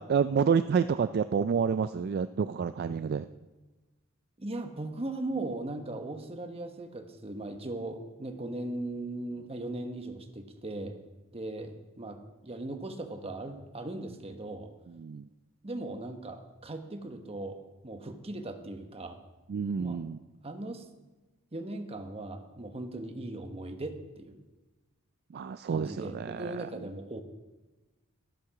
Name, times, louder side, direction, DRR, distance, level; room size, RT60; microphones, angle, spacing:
voice 1, 0.0-3.3 15.0-15.3 19.5-20.2 25.3-26.7, right 6 dB, 50° right, 11 dB, 0.3 m, -29 dB
voice 2, 4.4-11.0 11.3-14.7 15.6-19.2 19.8-20.0 20.4-20.8 21.5-24.4 25.7-27.2, right 2 dB, 30° right, 6 dB, 1.2 m, -38 dB
12.5 x 12.0 x 4.8 m, 1.1 s
head